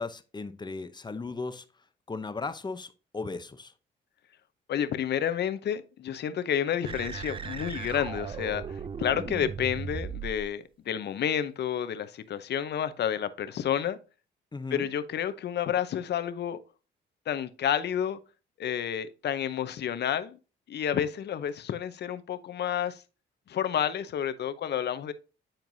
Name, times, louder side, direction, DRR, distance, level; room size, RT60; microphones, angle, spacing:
voice 1, 0.0-1.6 2.1-3.7 14.5-14.9, left 3 dB, 20° left, 0.7 m, -36 dB
voice 2, 4.7-14.0 14.7-16.6 17.3-18.2 18.6-20.4 20.7-23.0 23.5-25.1, left 9 dB, 60° left, 0.7 m, -30 dB
sound 1, 6.8-10.5, right 6 dB, 25° right, 0.4 m, -37 dB
8.9 x 4.5 x 2.6 m
cardioid pair, 90°, 20 cm